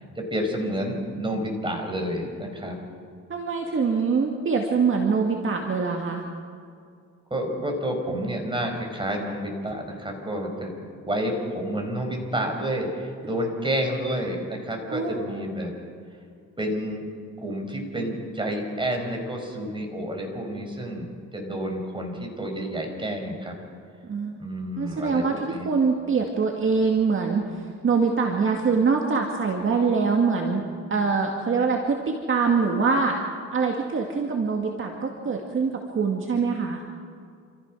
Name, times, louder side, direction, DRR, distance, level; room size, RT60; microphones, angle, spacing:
voice 1, 0.0-2.8 7.3-15.7 16.6-17.1 17.4-23.6 24.4-25.7, equal, 15° right, 2 dB, 5.0 m, -30 dB
voice 2, 3.3-6.2 14.9-15.4 24.0-24.4 24.8-30.6 30.9-33.2 33.5-36.8, right 5 dB, 45° right, 2 dB, 2.1 m, -24 dB
28.0 x 15.0 x 6.3 m, 2.3 s
cardioid pair, 90°, 30 cm